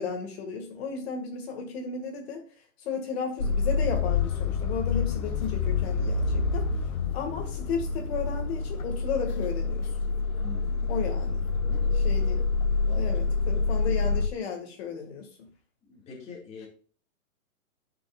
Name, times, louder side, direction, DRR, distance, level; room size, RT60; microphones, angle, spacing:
voice 1, 0.0-2.4 2.8-6.7 7.1-9.9 10.9-11.5 11.9-12.5 13.0-15.3, left 5 dB, 45° left, 3 dB, 2.0 m, -34 dB
sound 1, 3.4-14.3, left 4 dB, 75° left, 1.4 m, -27 dB
voice 2, 10.4-11.1 11.7-12.3 12.8-13.1 13.6-13.7 15.9-16.7, left 3 dB, 15° left, -2 dB, 2.3 m, -45 dB
12.5 x 6.1 x 2.5 m, 0.41 s
hypercardioid pair, 155°, 44 cm